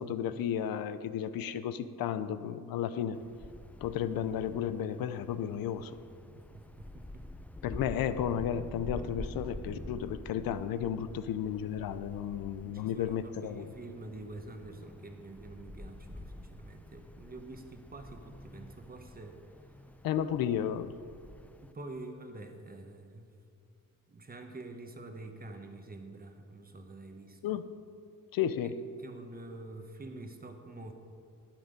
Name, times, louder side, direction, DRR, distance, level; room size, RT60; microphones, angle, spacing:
voice 1, 0.0-3.2 3.8-6.0 7.6-13.7 20.0-20.9 27.4-27.7 28.3-28.8, left 9 dB, 85° left, 12 dB, 0.6 m, -33 dB
Wind, 3.1-21.7, left 1 dB, 5° left, 0.3 m, -48 dB
voice 2, 6.3-7.4 12.6-19.4 21.6-23.3 24.1-27.6 28.6-28.7 29.0-30.9, right 2 dB, 25° right, 5 dB, 1.1 m, -47 dB
11.5 x 8.9 x 5.2 m, 2.5 s
cardioid pair, 105°, 35 cm